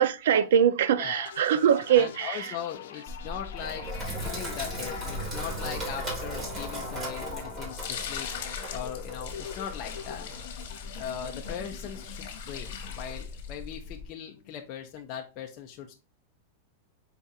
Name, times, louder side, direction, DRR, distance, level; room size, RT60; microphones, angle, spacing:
voice 1, 0.0-2.5, right 9 dB, 75° right, 0.4 m, -23 dB
voice 2, 1.0-1.3 1.9-3.9 4.2-8.3 8.7-10.3 10.9-16.0, left 9 dB, 30° left, 0.5 m, -39 dB
sound 1, 1.3-14.9, left 9 dB, 85° left, 0.6 m, -45 dB
Sink (filling or washing), 3.1-14.1, equal, 15° right, 1.4 m, -38 dB
sound 2, 7.7-13.7, left 8 dB, 60° left, 1.1 m, -41 dB
4.7 x 2.4 x 4.0 m
supercardioid pair, 170°, 0 cm